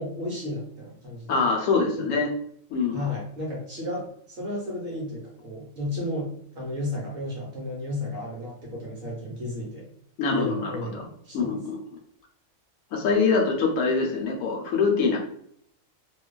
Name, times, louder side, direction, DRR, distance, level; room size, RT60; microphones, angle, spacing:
voice 1, 0.0-1.5 1.9-2.2 2.9-9.9 10.3-11.6, left 1 dB, 50° right, -4 dB, 0.8 m, -33 dB
voice 2, 1.3-2.3 2.7-3.0 10.2-11.0 11.3-11.8 12.9-15.2, left 4 dB, 80° left, 0 dB, 1.0 m, -24 dB
2.5 x 2.2 x 2.2 m, 0.65 s
omnidirectional pair, 1.4 m